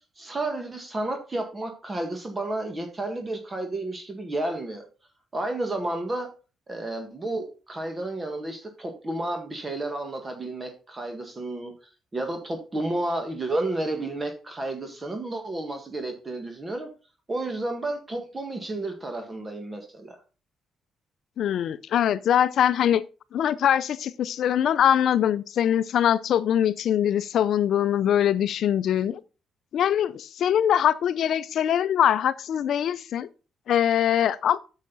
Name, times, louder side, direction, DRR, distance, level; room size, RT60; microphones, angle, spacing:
voice 1, 0.2-4.8 5.3-6.3 6.7-11.7 12.1-16.9 17.3-20.2, right 2 dB, 25° right, 1.8 m, -31 dB
voice 2, 21.4-23.0 23.3-29.2 29.7-33.3 33.7-34.6, left 10 dB, 70° left, 0.5 m, -22 dB
8.4 x 6.6 x 4.0 m
cardioid pair, 90°, 0 cm